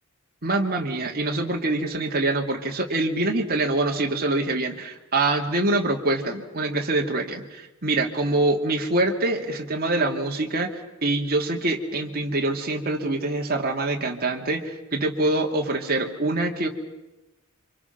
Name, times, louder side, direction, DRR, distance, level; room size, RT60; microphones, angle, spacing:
voice 1, 0.4-10.7 11.0-16.7, right 2 dB, 45° right, 2 dB, 2.6 m, -25 dB
29.5 x 26.0 x 6.0 m, 1.0 s
head